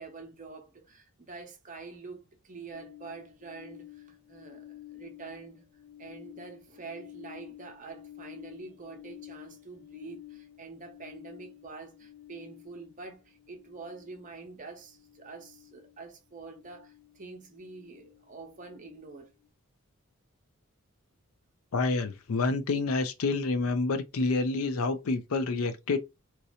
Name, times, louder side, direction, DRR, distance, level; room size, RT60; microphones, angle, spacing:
voice 1, 0.0-5.6 6.0-19.3, right 4 dB, 35° right, 0.8 m, -46 dB
sound 1, 2.7-19.5, left 13 dB, 85° left, 1.2 m, -51 dB
voice 2, 21.7-26.0, left 3 dB, 70° left, 0.5 m, -28 dB
3.0 x 2.7 x 2.7 m
head